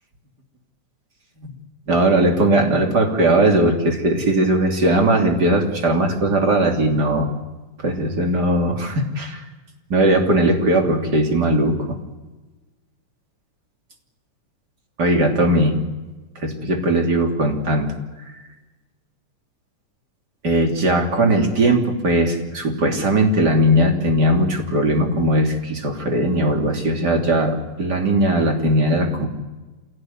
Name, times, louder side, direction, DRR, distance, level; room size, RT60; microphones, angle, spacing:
voice 1, 1.9-7.3 7.8-9.4 9.9-12.0 15.0-15.8 16.4-17.9 20.4-29.3, right 1 dB, 30° right, 3 dB, 3.4 m, -19 dB
27.5 x 17.5 x 9.6 m, 1.2 s
omnidirectional pair, 3.6 m